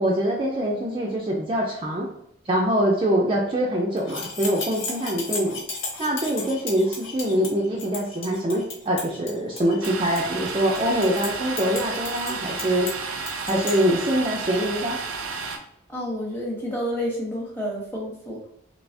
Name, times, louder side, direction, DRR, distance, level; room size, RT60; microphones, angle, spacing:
voice 1, 0.0-2.1 2.5-5.6 6.0-12.9 13.4-15.0, right 1 dB, 25° right, -2 dB, 0.4 m, -24 dB
sound 1, 4.0-13.8, left 4 dB, 70° left, 0.9 m, -35 dB
Domestic sounds home sounds, 9.8-15.6, right 4 dB, 85° right, 0.5 m, -32 dB
voice 2, 15.9-18.5, equal, 10° left, -3 dB, 0.9 m, -30 dB
3.3 x 2.7 x 2.6 m, 0.72 s
head